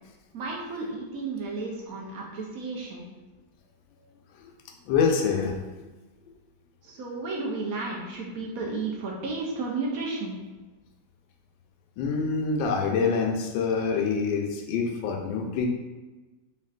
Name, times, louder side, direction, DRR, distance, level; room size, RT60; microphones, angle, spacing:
voice 1, 0.3-3.0 6.8-10.4, right 3 dB, 65° right, -2 dB, 0.9 m, -33 dB
voice 2, 4.8-5.9 12.0-15.7, left 5 dB, 85° left, 2 dB, 1.4 m, -26 dB
4.3 x 3.5 x 2.4 m, 1.2 s
omnidirectional pair, 2.0 m